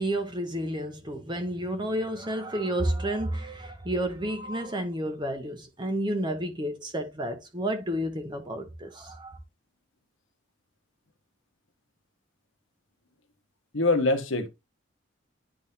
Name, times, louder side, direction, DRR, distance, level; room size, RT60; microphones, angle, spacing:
voice 1, 0.0-9.4, right 1 dB, 20° right, 1.1 m, -31 dB
voice 2, 13.7-14.5, left 2 dB, 80° left, 1.2 m, -23 dB
10.5 x 3.6 x 2.7 m
head